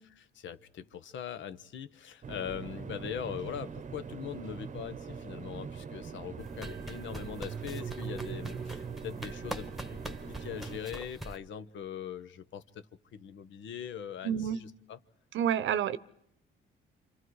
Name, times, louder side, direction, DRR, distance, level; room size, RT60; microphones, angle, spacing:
voice 1, 0.3-9.7 10.0-12.8 13.1-15.0, left 8 dB, 70° left, 1.1 m, -41 dB
sound 1, 2.2-10.8, right 6 dB, 40° right, 0.9 m, -41 dB
sound 2, 6.4-11.4, right 1 dB, ahead, 1.3 m, -44 dB
voice 2, 14.2-14.6 15.3-16.0, right 9 dB, 75° right, 0.9 m, -28 dB
28.0 x 25.5 x 4.8 m
cardioid pair, 90°, 20 cm